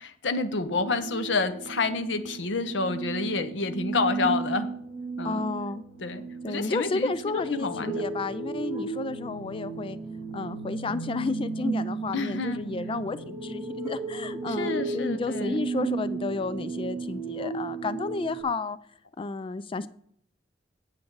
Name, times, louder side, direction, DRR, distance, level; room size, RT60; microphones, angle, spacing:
voice 1, 0.0-4.7 5.2-5.5 6.0-8.0 12.1-12.6 14.5-15.6, left 3 dB, 70° left, 0.9 m, -29 dB
sound 1, 0.6-18.4, right 4 dB, 10° right, 2.5 m, -34 dB
voice 2, 5.2-5.8 6.4-10.0 10.3-18.8 19.2-19.9, left 3 dB, 30° left, 0.3 m, -32 dB
8.7 x 8.3 x 4.7 m
head